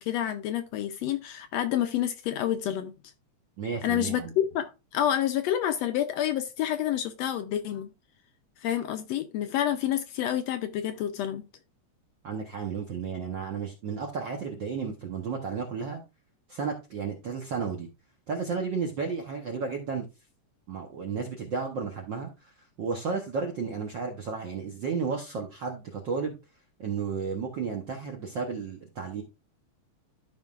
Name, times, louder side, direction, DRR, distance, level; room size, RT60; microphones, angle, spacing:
voice 1, 0.0-2.9 3.8-7.9 8.6-11.4, left 11 dB, 75° left, 8 dB, 1.6 m, -28 dB
voice 2, 3.6-4.3 12.2-16.0 16.5-17.9 18.3-20.1 20.7-22.5 22.8-26.4 26.8-29.2, right 5 dB, 65° right, 2 dB, 1.1 m, -33 dB
12.5 x 5.3 x 2.4 m, 0.27 s
omnidirectional pair, 3.4 m